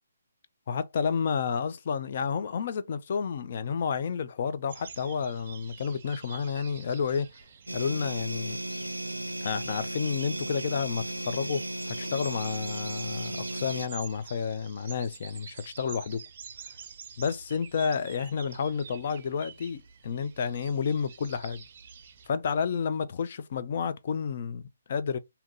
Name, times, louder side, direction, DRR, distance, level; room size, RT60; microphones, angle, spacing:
voice 1, 0.7-7.3 7.7-8.6 9.4-16.2 17.2-21.6 22.3-25.2, left 6 dB, 45° left, 0.5 m, -30 dB
sound 1, 4.7-22.3, right 6 dB, 40° right, 0.6 m, -48 dB
sound 2, 7.7-13.9, right 1 dB, 85° right, 0.4 m, -35 dB
3.6 x 2.8 x 4.0 m
figure-of-eight pair, 135°, 0 cm